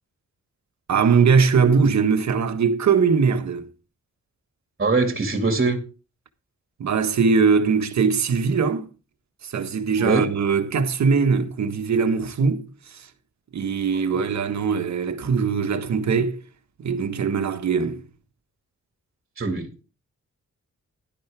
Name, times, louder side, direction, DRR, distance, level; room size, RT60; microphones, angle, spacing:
voice 1, 0.9-3.7 6.8-8.9 9.4-13.1 13.5-16.4 16.8-18.0, right 5 dB, 70° right, 1.5 m, -21 dB
voice 2, 4.8-5.8 10.0-10.3 19.4-19.8, right 3 dB, 35° right, 2.3 m, -22 dB
11.0 x 11.0 x 3.5 m
cardioid pair, 80°, 29 cm